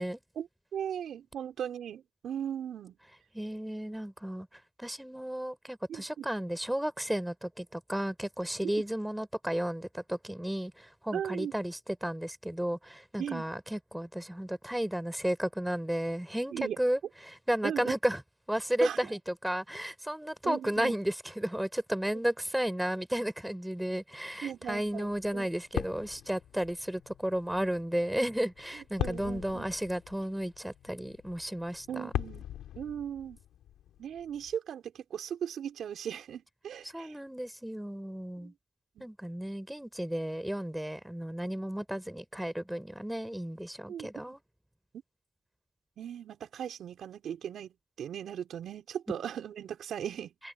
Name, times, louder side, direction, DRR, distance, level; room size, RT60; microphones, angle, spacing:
voice 1, 0.4-3.0 5.9-6.3 11.1-11.5 13.2-13.4 16.5-16.8 17.6-17.9 18.8-19.0 20.4-20.9 24.4-25.5 29.0-29.7 31.9-32.4 32.8-33.4 34.0-37.2 38.4-38.5 39.0-39.1 43.9-44.1 46.0-50.3, right 9 dB, 65° right, 5.1 m, -38 dB
voice 2, 3.3-4.5 4.8-18.2 18.5-32.1 36.9-38.5 39.0-44.4, right 1 dB, 5° right, 4.2 m, -33 dB
sound 1, 24.6-34.5, left 11 dB, 80° left, 5.4 m, -42 dB
cardioid pair, 90°, 0 cm